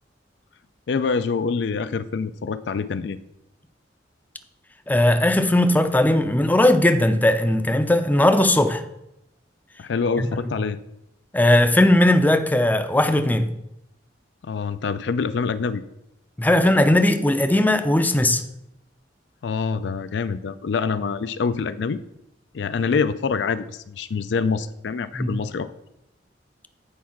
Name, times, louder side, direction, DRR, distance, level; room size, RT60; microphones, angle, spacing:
voice 1, 0.9-3.2 9.8-10.8 14.4-15.8 19.4-22.0 22.5-25.7, left 5 dB, 70° left, 0.4 m, -25 dB
voice 2, 4.9-8.8 10.2-10.5 11.3-13.5 16.4-18.4 25.1-25.4, left 1 dB, 10° left, 0.5 m, -18 dB
8.5 x 4.7 x 5.8 m
head